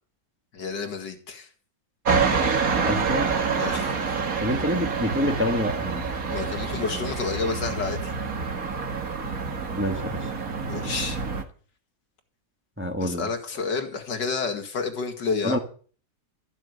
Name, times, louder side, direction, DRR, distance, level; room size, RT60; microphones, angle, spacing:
voice 1, 0.5-1.5 3.6-4.2 6.3-8.1 10.7-11.2 13.0-15.6, left 4 dB, 80° left, 5 dB, 2.6 m, -30 dB
sound 1, 2.0-11.4, right 5 dB, 55° right, 2.1 m, -27 dB
voice 2, 2.8-3.3 4.4-6.1 9.8-10.3 12.8-13.3 15.4-15.6, equal, 5° right, 5 dB, 1.4 m, -27 dB
14.0 x 6.5 x 9.5 m, 0.42 s
omnidirectional pair, 1.9 m